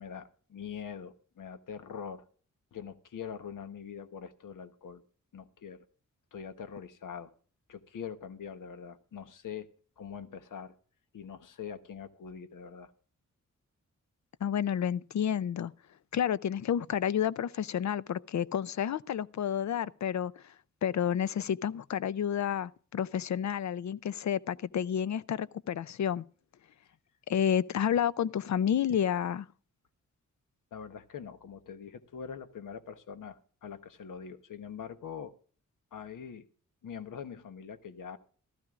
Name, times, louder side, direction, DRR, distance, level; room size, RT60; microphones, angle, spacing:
voice 1, 0.0-2.2 2.7-5.0 5.3-5.8 6.3-7.3 7.7-9.7 10.0-10.7 11.1-12.9 30.7-35.3 35.9-36.5 36.8-38.2, left 7 dB, 75° left, 1.1 m, -43 dB
voice 2, 14.4-15.7 16.1-20.5 20.8-26.2 27.3-29.5, left 9 dB, 60° left, 0.5 m, -30 dB
15.5 x 13.5 x 2.4 m
wide cardioid pair, 90°, 32 cm